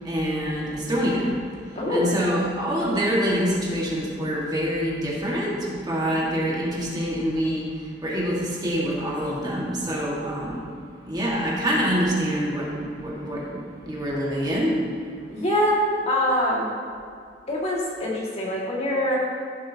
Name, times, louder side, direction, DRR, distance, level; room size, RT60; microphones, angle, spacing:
voice 1, 0.0-1.3 1.9-7.6 8.0-10.6 11.1-13.6 13.9-14.8, equal, 25° right, -5 dB, 1.8 m, -25 dB
voice 2, 1.8-2.2 15.3-16.7 17.5-19.2, left 1 dB, 40° left, -5 dB, 2.2 m, -24 dB
15.0 x 7.6 x 2.9 m, 2.3 s
head